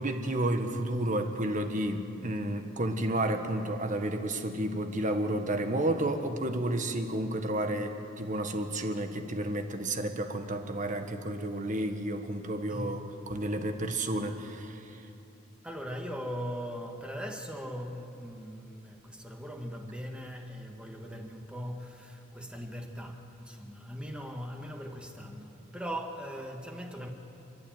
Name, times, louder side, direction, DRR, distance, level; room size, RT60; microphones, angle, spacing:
voice 1, 0.0-15.0, right 1 dB, 40° right, 1.6 m, -31 dB
voice 2, 12.7-13.1 15.6-27.1, equal, 5° right, 1.8 m, -40 dB
29.5 x 12.0 x 9.2 m
head